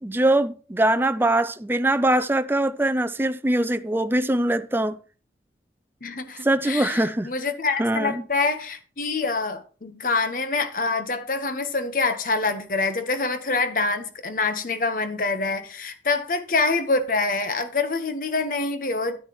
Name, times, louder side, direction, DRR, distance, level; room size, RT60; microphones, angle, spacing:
voice 1, 0.0-5.0 6.4-7.3 7.8-8.2, right 1 dB, 10° right, 0.5 m, -22 dB
voice 2, 6.0-19.2, left 3 dB, 50° left, 1.2 m, -26 dB
10.5 x 9.8 x 3.1 m
head